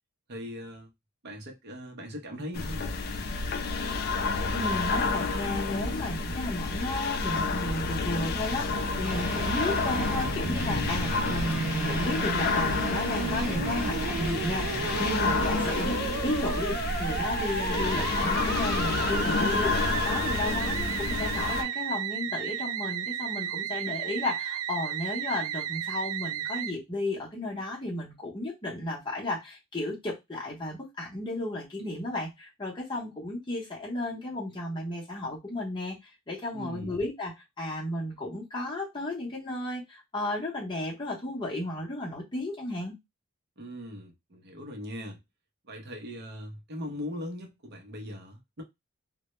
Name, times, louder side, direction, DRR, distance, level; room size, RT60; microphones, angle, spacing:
voice 1, 0.3-0.9 1.2-2.9 36.5-37.0 43.6-45.2 45.6-48.6, left 1 dB, 50° right, 0.6 m, -40 dB
sound 1, 2.5-21.6, left 3 dB, 50° left, 0.4 m, -29 dB
voice 2, 4.5-42.9, left 1 dB, 20° left, 0.7 m, -34 dB
Musical instrument, 7.6-26.7, right 8 dB, 90° right, 0.3 m, -34 dB
sound 2, 9.0-15.9, right 1 dB, 10° right, 0.8 m, -38 dB
2.1 x 2.1 x 2.9 m
head